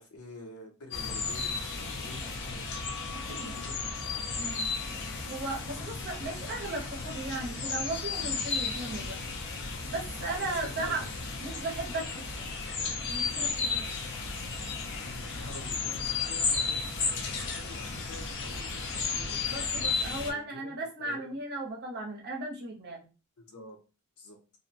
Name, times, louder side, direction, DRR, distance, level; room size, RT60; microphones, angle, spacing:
voice 1, 0.0-2.8 3.1-4.2 10.2-11.1 15.4-16.9 17.2-21.4 23.4-23.8 24.2-24.4, left 2 dB, 80° left, 1 dB, 0.8 m, -48 dB
sound 1, 0.9-20.3, left 4 dB, 55° left, 0.5 m, -34 dB
voice 2, 3.1-3.5 4.4-4.7 5.3-9.3 9.9-11.0 11.4-12.5 13.1-13.9 19.5-23.0, right 2 dB, 45° right, -1 dB, 0.7 m, -36 dB
2.6 x 2.1 x 2.7 m, 0.32 s
head